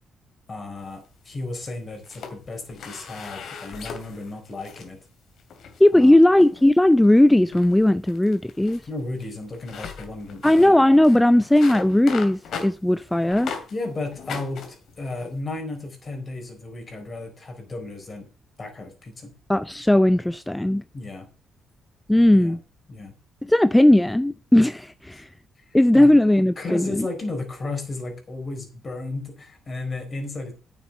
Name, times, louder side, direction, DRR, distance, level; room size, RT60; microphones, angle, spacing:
voice 1, 0.5-5.0 5.9-6.2 8.9-10.8 11.3-11.4 13.7-14.6 15.0-18.3 18.6-19.3 20.9-21.3 22.3-22.6 22.9-23.1 25.1-25.2 25.6-26.1 26.6-30.5, left 2 dB, 35° left, 4.5 m, -34 dB
sound 1, 0.8-1.6 2.0-4.9 5.4-5.8 6.4-6.7 7.0-7.2 7.5-13.8 14.1-15.4, left 6 dB, 70° left, 2.5 m, -38 dB
voice 2, 5.8-8.8 10.4-13.5 19.5-20.8 22.1-22.6 23.4-25.3 25.7-27.1, left 1 dB, 10° left, 0.4 m, -17 dB
9.6 x 7.3 x 6.6 m
cardioid pair, 90°, 0 cm